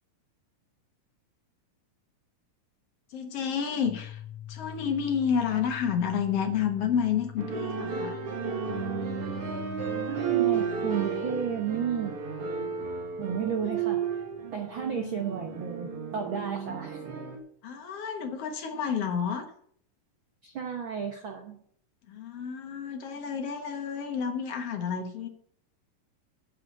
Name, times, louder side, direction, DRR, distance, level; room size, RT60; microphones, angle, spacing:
voice 1, 3.1-4.2 4.5-8.2 17.6-19.5 22.1-25.3, left 7 dB, 60° left, 5 dB, 1.9 m, -30 dB
sound 1, 3.8-15.7, left 11 dB, ahead, 4.2 m, -46 dB
sound 2, 7.4-17.4, right 6 dB, 50° right, 2.3 m, -32 dB
voice 2, 10.1-12.2 13.2-14.2 14.5-17.0 20.4-21.6, right 7 dB, 65° right, 4 dB, 1.2 m, -33 dB
8.4 x 7.7 x 7.3 m, 0.63 s
omnidirectional pair, 3.8 m